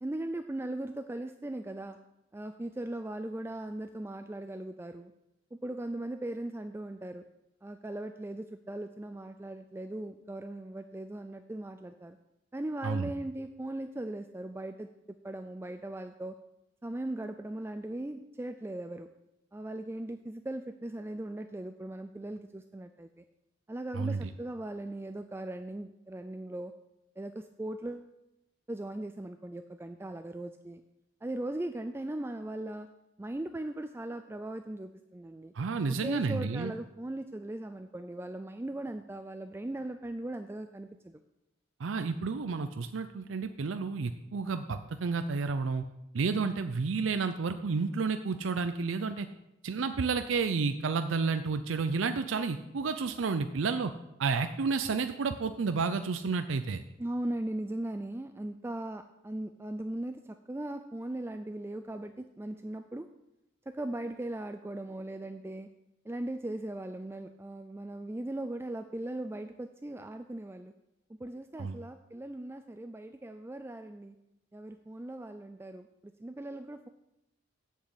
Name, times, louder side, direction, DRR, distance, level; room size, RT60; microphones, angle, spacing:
voice 1, 0.0-2.0 2.3-5.1 5.6-7.3 7.6-12.2 12.5-14.9 15.2-16.3 16.8-19.1 19.5-23.2 23.7-26.7 27.2-28.1 28.7-30.8 31.2-32.9 33.2-35.5 35.9-41.2 57.0-63.1 63.7-65.7 66.0-70.7 71.1-74.2 74.5-76.9, right 1 dB, 10° right, 8 dB, 0.3 m, -39 dB
voice 2, 23.9-24.3 35.5-36.7 41.8-45.8 46.1-49.3 49.6-53.9 54.2-56.8 71.6-71.8, right 4 dB, 80° right, 9 dB, 0.5 m, -31 dB
7.4 x 7.1 x 8.0 m, 0.89 s
head